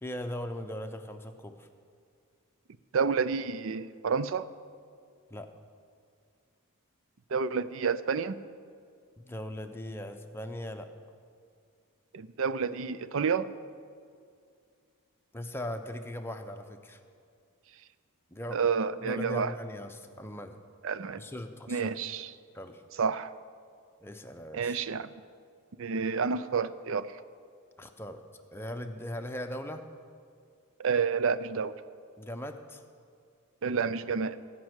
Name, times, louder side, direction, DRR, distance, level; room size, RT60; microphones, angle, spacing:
voice 1, 0.0-1.7 5.3-5.5 9.2-10.9 15.3-17.0 18.3-18.6 19.0-20.6 21.2-21.9 22.5-22.8 24.0-24.8 27.8-28.2 28.5-29.9 32.2-32.8, left 1 dB, 10° left, 6 dB, 0.7 m, -39 dB
voice 2, 2.9-4.5 7.3-8.4 12.1-13.5 18.5-19.5 20.8-21.2 21.7-22.3 23.0-23.3 24.5-25.1 25.8-27.2 30.8-31.7 33.6-34.4, right 5 dB, 60° right, 14 dB, 0.5 m, -29 dB
18.0 x 6.0 x 8.0 m, 2.3 s
head